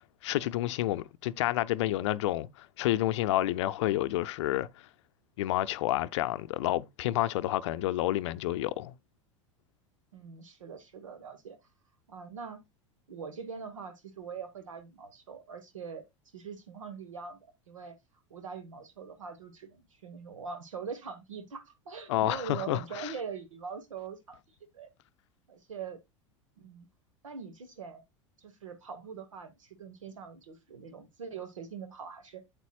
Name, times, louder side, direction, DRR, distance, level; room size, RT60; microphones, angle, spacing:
voice 1, 0.2-4.7 5.4-8.9 22.1-23.1, left 15 dB, 65° left, 0.5 m, -29 dB
voice 2, 10.1-11.6 12.1-12.6 13.1-16.0 16.3-17.9 18.3-24.4 24.7-24.9 25.5-26.0 26.6-26.9 27.2-28.0 28.4-32.4, right 6 dB, 80° right, 1.2 m, -43 dB
8.2 x 8.2 x 2.3 m
hypercardioid pair, 85°, 16 cm